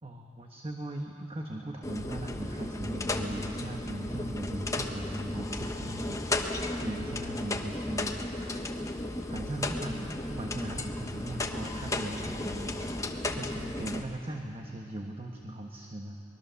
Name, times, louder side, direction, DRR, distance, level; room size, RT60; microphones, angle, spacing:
voice 1, 0.0-8.8 9.3-16.2, right 1 dB, 30° right, 2 dB, 1.3 m, -39 dB
sound 1, 1.8-14.0, left 2 dB, 20° left, 1.1 m, -34 dB
24.0 x 21.0 x 7.0 m, 3.0 s
head